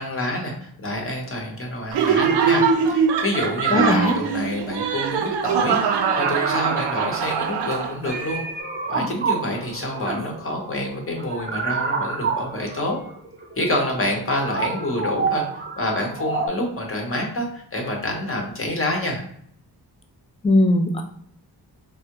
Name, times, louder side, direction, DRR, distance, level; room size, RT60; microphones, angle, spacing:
voice 1, 0.0-8.4 8.9-13.0 13.6-19.2, left 1 dB, 35° left, 1 dB, 0.9 m, -27 dB
Laughter, 1.9-8.2, right 6 dB, 80° right, 0.5 m, -22 dB
voice 2, 3.7-4.2 20.4-21.0, left 1 dB, 15° left, 3 dB, 0.4 m, -18 dB
sound 1, 8.1-16.5, right 4 dB, 25° right, 0.7 m, -28 dB
3.4 x 2.0 x 2.9 m, 0.64 s
wide cardioid pair, 85°, 40 cm